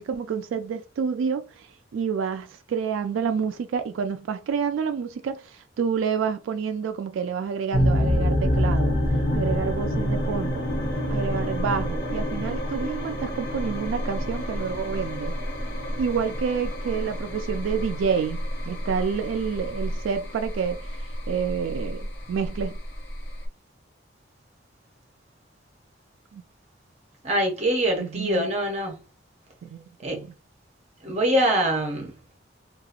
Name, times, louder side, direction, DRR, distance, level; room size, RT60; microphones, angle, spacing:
voice 1, 0.0-1.7 1.9-8.9 9.3-10.7 11.1-15.4 16.0-18.4 18.7-20.8 21.3-22.8 26.3-26.4 28.0-28.5 29.6-29.8 30.1-30.3, right 6 dB, 85° right, 0.3 m, -28 dB
sound 1, 7.7-23.5, equal, 60° left, 0.9 m, -27 dB
voice 2, 27.2-29.0 30.0-30.2 31.0-32.1, right 1 dB, 35° right, 0.7 m, -24 dB
2.8 x 2.3 x 2.4 m
head